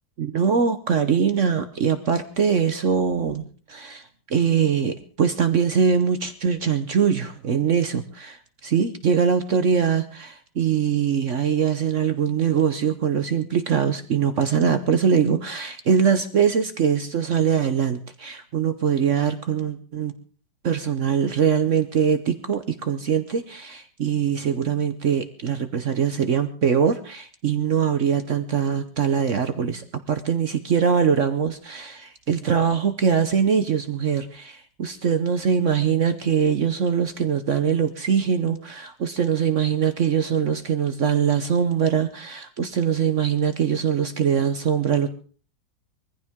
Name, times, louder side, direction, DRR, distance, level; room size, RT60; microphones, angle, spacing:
voice 1, 0.2-3.4 3.7-8.4 8.6-20.1 20.6-45.1, right 7 dB, 50° right, 10 dB, 1.0 m, -22 dB
21.0 x 15.0 x 3.6 m, 0.41 s
omnidirectional pair, 2.0 m